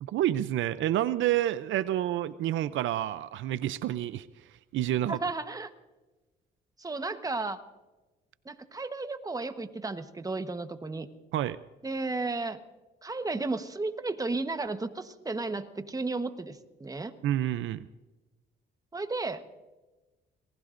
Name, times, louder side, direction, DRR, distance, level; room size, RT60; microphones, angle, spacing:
voice 1, 0.0-4.3 4.7-5.2 11.3-11.6 17.2-17.9, right 12 dB, 75° right, 15 dB, 0.5 m, -28 dB
voice 2, 5.1-5.7 6.8-7.6 8.4-11.1 11.8-12.6 13.0-17.1 18.9-19.4, right 3 dB, 20° right, 9 dB, 1.1 m, -33 dB
28.0 x 19.0 x 2.6 m, 1.2 s
cardioid pair, 90°, 20 cm